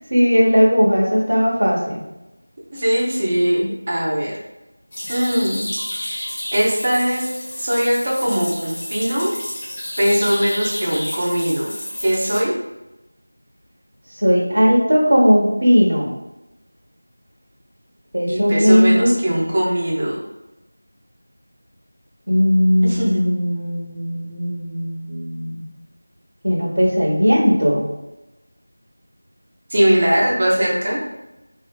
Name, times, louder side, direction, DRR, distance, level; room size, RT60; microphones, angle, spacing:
voice 1, 0.1-2.0 14.2-16.1 18.1-19.1 22.3-25.6 26.4-27.8, equal, 70° right, -5 dB, 0.8 m, -17 dB
voice 2, 2.7-4.3 5.1-5.6 6.0-6.3 6.5-7.3 7.6-9.3 10.0-11.6 12.0-12.5 18.3-20.2 22.8-23.3 29.7-31.0, equal, 25° right, -5 dB, 0.6 m, -20 dB
sound 1, 4.9-12.4, left 1 dB, 30° left, 0.5 m, -31 dB
3.2 x 2.6 x 2.2 m, 0.99 s
figure-of-eight pair, 175°, 0 cm